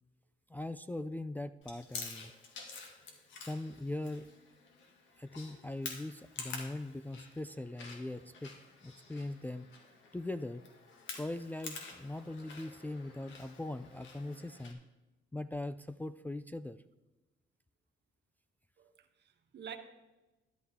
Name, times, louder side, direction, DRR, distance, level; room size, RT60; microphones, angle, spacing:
voice 1, 0.5-2.3 3.4-4.3 5.2-8.5 8.8-9.7 10.1-10.6 11.1-14.8 15.3-16.8, left 2 dB, 10° left, 10 dB, 0.4 m, -41 dB
Chewing mastication, 1.6-14.7, left 4 dB, 75° left, 2.2 m, -49 dB
voice 2, 18.8-19.8, right 8 dB, 60° right, 6 dB, 1.5 m, -48 dB
12.5 x 11.5 x 3.6 m, 1.1 s
cardioid pair, 90°, 20 cm